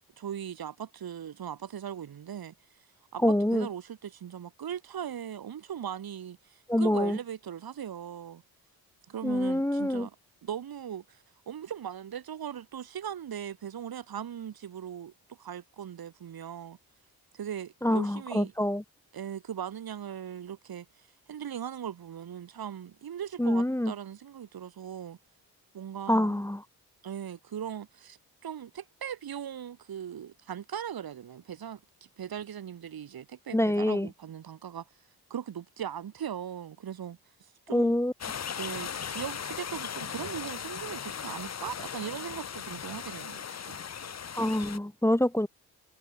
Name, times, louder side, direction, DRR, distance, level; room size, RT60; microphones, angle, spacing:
voice 1, 0.2-2.5 3.1-8.4 9.1-10.1 10.4-15.1 15.4-16.8 17.3-18.5 19.1-20.9 21.3-25.2 25.7-26.4 27.0-31.8 32.2-34.9 35.3-37.2 37.7-38.0 38.6-43.8, right 9 dB, 65° right, 3.4 m, -39 dB
voice 2, 3.2-3.7 6.7-7.2 9.2-10.1 17.8-18.8 23.4-23.9 26.1-26.6 33.5-34.1 37.7-38.1 44.3-45.5, left 1 dB, 5° left, 1.7 m, -26 dB
sound 1, 38.2-44.8, left 7 dB, 45° left, 1.2 m, -38 dB
cardioid pair, 70°, 38 cm